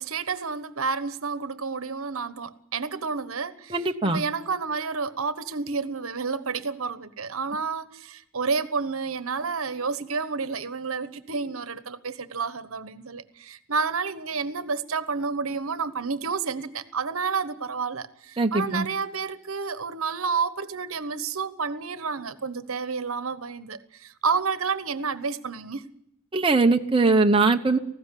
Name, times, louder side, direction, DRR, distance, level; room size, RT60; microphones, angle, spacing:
voice 1, 0.0-25.8, right 5 dB, 70° right, 1.2 m, -30 dB
voice 2, 3.7-4.2 18.4-18.9 26.3-27.8, right 3 dB, 25° right, 0.9 m, -21 dB
18.5 x 15.5 x 10.0 m
head